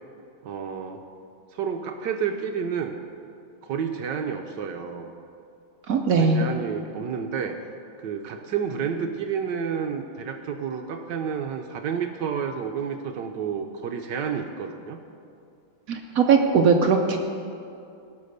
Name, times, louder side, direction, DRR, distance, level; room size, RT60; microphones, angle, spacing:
voice 1, 0.4-1.0 1.5-3.0 3.6-5.1 6.1-7.6 8.0-15.0, right 7 dB, 70° right, 5 dB, 1.1 m, -30 dB
voice 2, 5.9-6.5 15.9-17.2, right 5 dB, 90° right, 3 dB, 0.7 m, -20 dB
17.5 x 6.1 x 6.5 m, 2.5 s
omnidirectional pair, 2.4 m